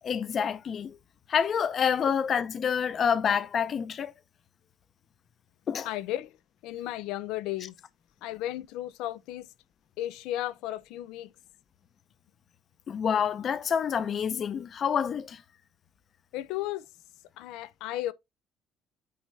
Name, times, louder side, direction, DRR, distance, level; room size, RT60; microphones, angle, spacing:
voice 1, 0.0-1.0 1.3-4.1 5.7-5.9 12.9-15.4, left 7 dB, 35° left, 0.6 m, -27 dB
voice 2, 5.8-6.4 6.6-7.7 8.2-9.5 10.0-11.3 16.3-16.8 17.4-18.1, left 14 dB, 90° left, 0.6 m, -34 dB
9.4 x 3.4 x 4.1 m
cardioid pair, 165°, 0 cm